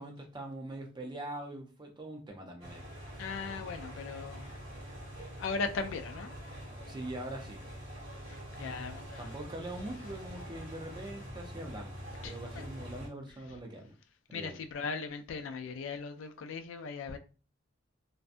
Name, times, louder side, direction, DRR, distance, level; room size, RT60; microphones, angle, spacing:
voice 1, 0.0-2.9 6.9-7.6 9.2-12.0 12.2-13.9 14.3-14.6, right 1 dB, 25° right, 0.5 m, -42 dB
sound 1, 2.6-13.1, equal, 50° right, 1.1 m, -45 dB
voice 2, 3.2-4.5 5.4-6.3 8.6-9.2 12.2-12.7 14.3-17.2, left 4 dB, 70° left, 0.3 m, -38 dB
2.6 x 2.2 x 2.4 m
head